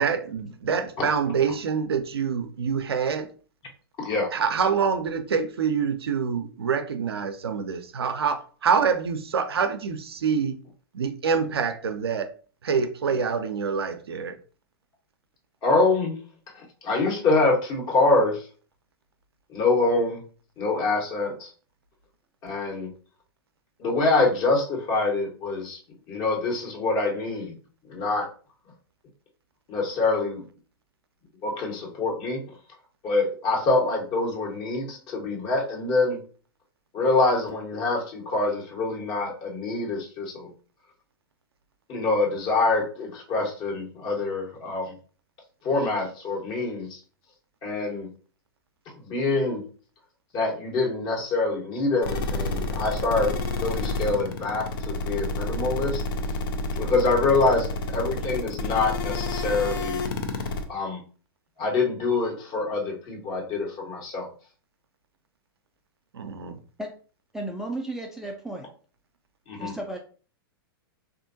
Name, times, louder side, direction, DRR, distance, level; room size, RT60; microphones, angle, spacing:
voice 1, 0.0-3.3 4.3-10.6 10.9-12.3 12.6-14.4 66.1-66.6, right 6 dB, 90° right, 0.5 m, -26 dB
voice 2, 4.0-4.3 15.6-16.2 16.5-18.5 19.5-20.2 20.6-21.5 22.4-22.9 23.8-25.8 26.1-27.6 27.9-28.3 29.7-30.4 31.4-32.4 33.0-36.2 36.9-40.5 41.9-44.9 45.6-47.0 47.6-48.1 49.0-49.6 50.3-56.0 56.7-60.0 60.7-61.0 61.6-64.3 69.5-69.7, left 3 dB, 40° left, 1.3 m, -25 dB
sound 1, 52.0-60.6, left 2 dB, 60° left, 0.6 m, -29 dB
voice 3, 67.3-68.7 69.5-70.0, right 1 dB, 5° right, 0.4 m, -34 dB
3.6 x 2.5 x 2.6 m
hypercardioid pair, 110°, 13 cm